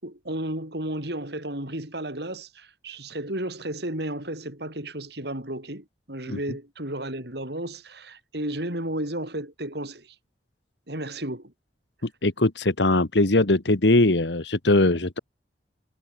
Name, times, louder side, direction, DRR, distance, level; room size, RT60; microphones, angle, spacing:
voice 1, 0.0-10.2 10.9-11.5, right 1 dB, 65° right, 6.3 m, -33 dB
voice 2, 12.2-15.2, left 2 dB, 75° left, 1.6 m, -21 dB
head